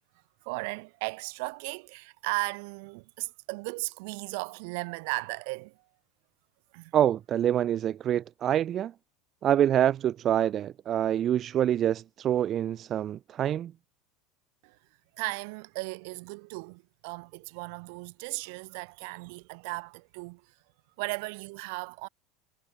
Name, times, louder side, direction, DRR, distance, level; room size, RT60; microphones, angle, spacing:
voice 1, 0.4-5.8 6.7-6.9 14.6-14.8 15.1-20.4 21.0-22.1, right 30 dB, 65° right, 4.6 m, -36 dB
voice 2, 6.9-8.9 9.4-13.7, right 10 dB, 30° right, 0.9 m, -26 dB
supercardioid pair, 160°, 0 cm